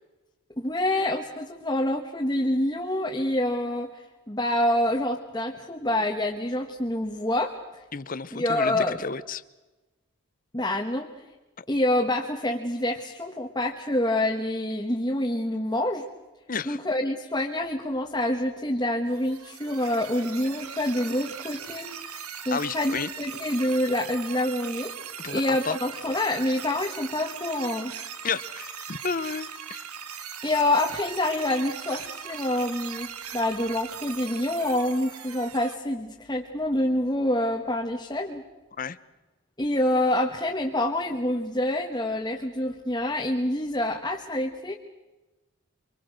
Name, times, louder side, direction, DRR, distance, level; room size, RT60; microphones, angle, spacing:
voice 1, 0.6-7.6 8.3-9.0 10.5-11.1 11.7-16.1 16.6-21.9 22.4-27.9 30.4-38.4 39.6-44.7, left 1 dB, 20° left, 1.2 m, -27 dB
voice 2, 7.9-9.4 11.6-11.7 16.5-16.8 22.5-23.1 25.2-25.8 28.2-29.8 38.8-39.0, left 5 dB, 40° left, 0.7 m, -32 dB
sound 1, 19.1-35.7, right 8 dB, 80° right, 1.6 m, -39 dB
25.0 x 24.5 x 6.4 m
head